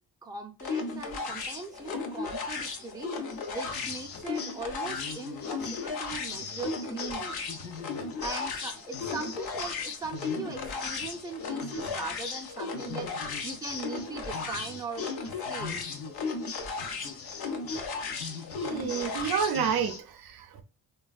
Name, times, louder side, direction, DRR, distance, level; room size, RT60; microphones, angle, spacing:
voice 1, 0.2-3.1 3.5-7.3 8.2-15.1 15.5-15.8, right 4 dB, 10° right, 0.5 m, -40 dB
sound 1, 0.6-19.6, left 4 dB, 65° left, 0.8 m, -36 dB
sound 2, 3.3-20.0, left 5 dB, 40° left, 0.5 m, -43 dB
voice 2, 18.6-20.6, right 7 dB, 65° right, 0.5 m, -30 dB
3.2 x 2.2 x 2.3 m
cardioid pair, 90°, 39 cm